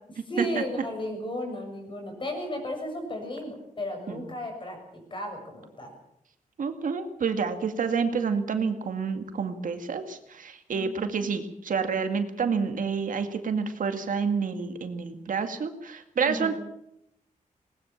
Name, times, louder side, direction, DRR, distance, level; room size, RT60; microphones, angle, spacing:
voice 1, 0.3-5.9 10.7-11.3 16.2-16.6, equal, 35° left, 3 dB, 6.9 m, -34 dB
voice 2, 6.6-16.6, right 5 dB, 75° right, 7 dB, 2.2 m, -29 dB
20.0 x 20.0 x 7.3 m, 0.78 s
wide cardioid pair, 155°, 14 cm